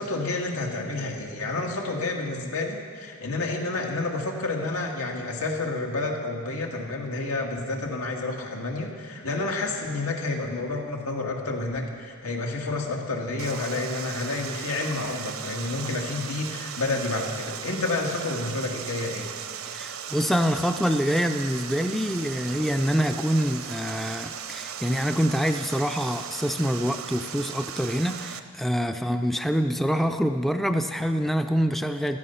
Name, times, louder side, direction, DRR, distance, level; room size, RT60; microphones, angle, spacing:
voice 1, 0.0-19.3 28.9-29.0, left 2 dB, 90° left, 1 dB, 2.0 m, -29 dB
Water, 13.4-28.4, right 8 dB, 75° right, 0.7 m, -37 dB
voice 2, 19.7-32.2, equal, ahead, 7 dB, 0.4 m, -25 dB
15.5 x 13.0 x 5.6 m, 2.1 s
head